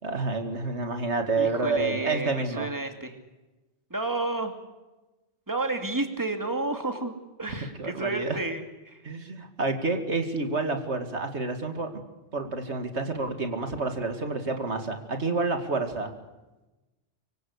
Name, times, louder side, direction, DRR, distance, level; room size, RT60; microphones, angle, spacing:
voice 1, 0.0-2.7 7.8-8.4 9.0-12.0 12.3-16.1, right 3 dB, 90° right, 6 dB, 2.8 m, -29 dB
voice 2, 1.3-3.2 3.9-4.6 5.5-7.1 7.4-9.0, right 2 dB, 15° right, 6 dB, 2.5 m, -31 dB
25.0 x 24.5 x 6.6 m, 1.1 s
omnidirectional pair, 1.1 m